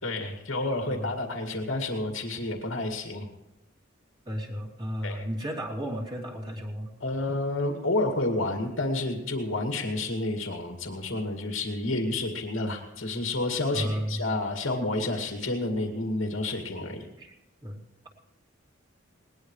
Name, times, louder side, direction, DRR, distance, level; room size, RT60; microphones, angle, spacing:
voice 1, 0.0-3.3 5.0-5.3 7.0-17.0, left 2 dB, 80° left, 3 dB, 2.3 m, -30 dB
voice 2, 4.2-6.9 13.7-14.3 17.2-17.3 17.6-17.8, equal, 25° right, -3 dB, 3.0 m, -33 dB
20.5 x 19.5 x 3.3 m, 0.98 s
head